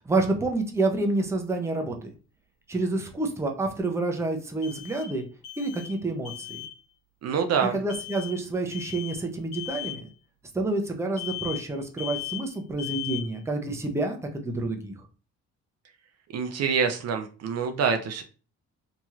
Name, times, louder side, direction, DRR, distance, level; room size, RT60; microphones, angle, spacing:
voice 1, 0.1-2.1 2.7-5.3 5.6-6.6 7.7-10.1 10.5-14.2 14.4-15.0, right 2 dB, 10° right, 3 dB, 0.6 m, -28 dB
sound 1, 1.4-1.5 4.6-5.2 5.4-6.0 6.2-6.7 7.9-8.4 8.7-9.2 9.5-10.0 11.2-11.7 12.0-12.5 12.8-13.3, left 16 dB, 50° left, 1.3 m, -37 dB
voice 2, 7.2-7.8 16.3-18.2, right 6 dB, 55° right, 6 dB, 0.5 m, -26 dB
2.9 x 2.9 x 2.4 m, 0.36 s
cardioid pair, 90°, 30 cm